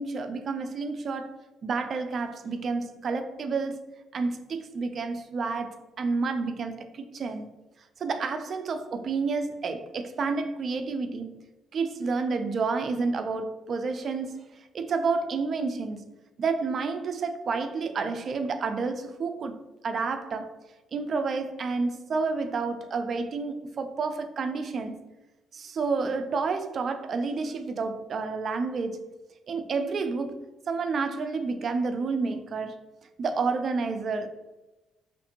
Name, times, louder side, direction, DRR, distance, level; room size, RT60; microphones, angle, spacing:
voice 1, 0.0-1.3 1.6-3.8 4.1-7.5 8.0-11.3 11.7-14.4 14.7-16.0 16.4-20.5 20.9-25.0 25.5-29.1 29.5-30.3 30.7-32.8 33.2-34.3, right 4 dB, 50° right, 0.3 m, -30 dB
2.6 x 2.5 x 2.6 m
cardioid pair, 80°, 0 cm